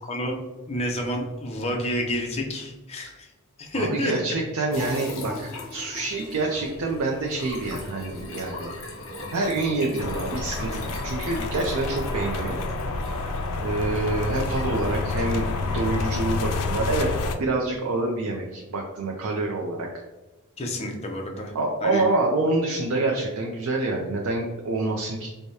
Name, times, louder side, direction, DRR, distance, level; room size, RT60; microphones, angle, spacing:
voice 1, 0.7-3.3 3.6-4.2 20.6-21.5 21.8-22.0, equal, 30° left, 1 dB, 0.5 m, -29 dB
voice 2, 3.7-8.7 9.3-12.6 13.6-17.1 17.4-19.9 21.5-25.3, right 2 dB, 75° right, 0 dB, 0.5 m, -27 dB
sound 1, 4.7-15.7, left 2 dB, 60° left, 0.9 m, -39 dB
sound 2, 10.0-17.4, left 3 dB, 90° left, 0.4 m, -28 dB
4.7 x 2.2 x 2.7 m, 1.1 s
head